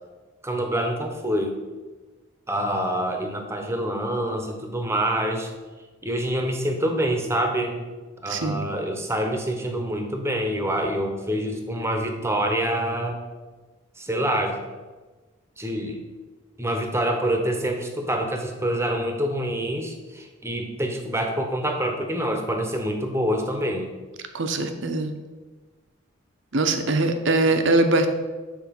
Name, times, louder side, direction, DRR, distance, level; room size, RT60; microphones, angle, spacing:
voice 1, 0.4-1.5 2.5-5.5 6.0-7.9 8.2-13.2 14.0-14.6 15.6-16.0 16.6-23.9, right 1 dB, 15° right, 4 dB, 0.9 m, -26 dB
voice 2, 8.3-8.7 24.3-25.1 26.5-28.1, right 2 dB, 60° right, 7 dB, 0.8 m, -22 dB
7.1 x 4.5 x 5.9 m, 1.3 s
head